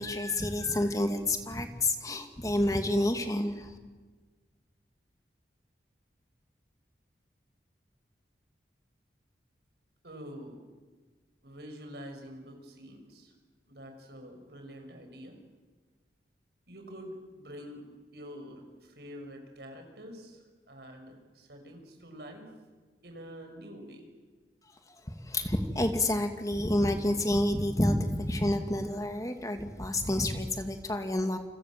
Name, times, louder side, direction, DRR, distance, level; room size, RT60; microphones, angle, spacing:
voice 1, 0.0-3.7 25.1-31.4, left 1 dB, 20° left, 6 dB, 2.5 m, -29 dB
voice 2, 10.0-10.6 11.4-13.3 13.7-15.4 16.7-17.9 18.1-20.4 20.7-22.5 23.0-24.1, equal, 65° right, 4 dB, 6.7 m, -46 dB
29.0 x 26.0 x 7.7 m, 1.3 s
head